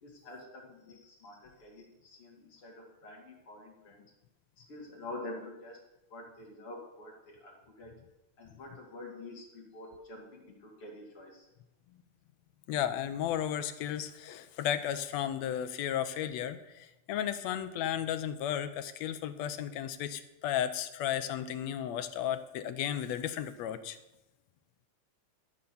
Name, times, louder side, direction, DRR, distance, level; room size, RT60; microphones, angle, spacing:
voice 1, 0.0-4.0 4.6-5.8 6.1-7.9 8.4-11.5, left 2 dB, 50° left, -1 dB, 3.3 m, -47 dB
voice 2, 12.7-24.0, left 10 dB, 75° left, 10 dB, 1.8 m, -34 dB
13.5 x 6.5 x 7.0 m, 0.96 s
omnidirectional pair, 3.3 m